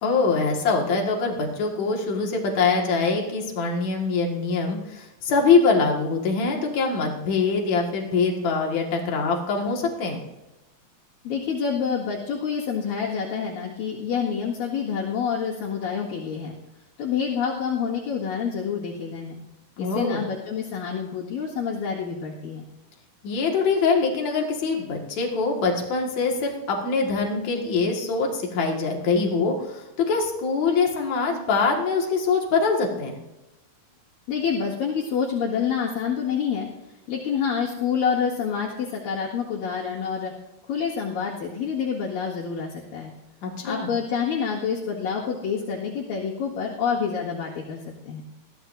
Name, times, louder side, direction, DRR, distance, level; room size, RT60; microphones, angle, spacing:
voice 1, 0.0-10.2 19.8-20.2 23.2-33.2 43.4-43.9, left 4 dB, 55° left, 0 dB, 3.0 m, -23 dB
voice 2, 11.2-16.5 17.0-19.4 19.8-22.6 34.3-36.7 37.1-40.3 40.7-43.1 43.6-48.2, left 6 dB, 75° left, -8 dB, 3.5 m, -27 dB
20.5 x 15.0 x 2.7 m, 0.99 s
omnidirectional pair, 4.1 m